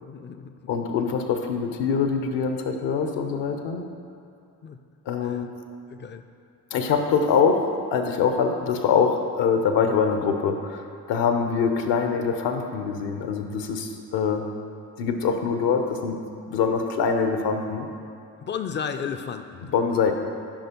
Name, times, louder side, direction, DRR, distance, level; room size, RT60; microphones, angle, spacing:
voice 1, 0.0-0.7 4.6-4.8 5.2-5.4 5.9-6.2 18.4-19.7, left 7 dB, 25° left, 8 dB, 0.4 m, -34 dB
voice 2, 0.7-3.8 5.1-5.5 6.7-14.4 15.0-16.2 16.5-17.9 19.7-20.1, left 6 dB, 60° left, 5 dB, 0.8 m, -24 dB
8.7 x 5.5 x 3.0 m, 2.4 s
hypercardioid pair, 45°, 47 cm